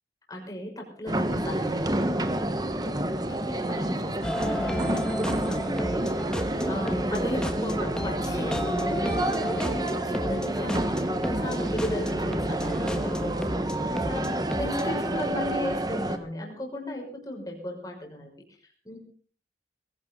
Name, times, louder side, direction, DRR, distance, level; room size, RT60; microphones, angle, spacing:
voice 1, 0.3-3.0 3.3-6.3 6.7-10.9 11.2-18.3 18.8-19.0, left 1 dB, 20° left, 0 dB, 6.0 m, -36 dB
sound 1, 1.1-16.2, right 1 dB, 20° right, 1.3 m, -29 dB
sound 2, 4.2-14.8, equal, 5° left, 1.4 m, -33 dB
22.0 x 16.5 x 3.9 m, 0.43 s
head